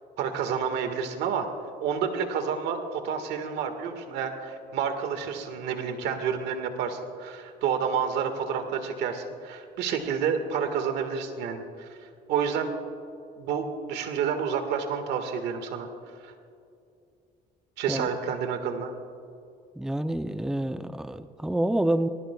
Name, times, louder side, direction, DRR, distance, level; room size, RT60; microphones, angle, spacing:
voice 1, 0.2-1.5 1.8-12.0 12.3-12.7 13.4-15.9 16.2-16.3 17.8-18.9, right 7 dB, 85° right, 7 dB, 1.7 m, -29 dB
voice 2, 19.8-22.1, right 1 dB, 5° right, 10 dB, 0.5 m, -27 dB
23.0 x 19.5 x 2.3 m, 2.5 s
cardioid pair, 110°, 17 cm